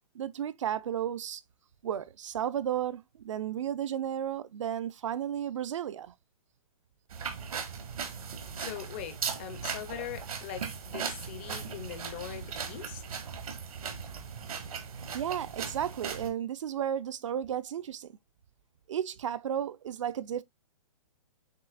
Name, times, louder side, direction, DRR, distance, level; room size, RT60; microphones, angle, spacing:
voice 1, 0.1-1.4 1.8-6.1 15.1-18.1 18.9-20.4, right 10 dB, 60° right, 0.5 m, -33 dB
sound 1, 7.1-16.3, right 6 dB, 75° right, 1.4 m, -38 dB
voice 2, 8.6-13.2, left 10 dB, 20° left, 0.4 m, -41 dB
7.4 x 2.8 x 2.3 m
hypercardioid pair, 170°, 18 cm